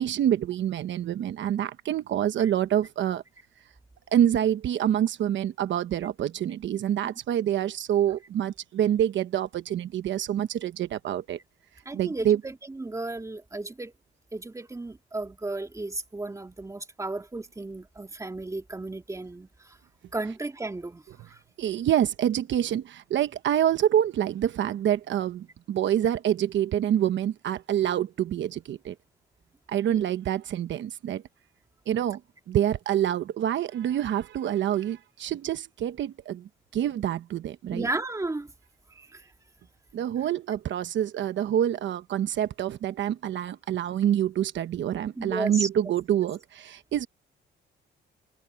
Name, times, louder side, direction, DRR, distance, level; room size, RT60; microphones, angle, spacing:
voice 1, 0.0-3.2 4.1-11.4 11.9-12.4 21.6-28.9 29.7-31.2 31.9-32.2 32.5-37.9 39.9-47.1, right 10 dB, 70° right, 1.1 m, -26 dB
voice 2, 11.9-13.9 14.3-19.8 20.1-21.4 37.7-38.5 38.9-39.2 45.2-45.7, right 2 dB, 15° right, 2.1 m, -34 dB
cardioid pair, 90°, 20 cm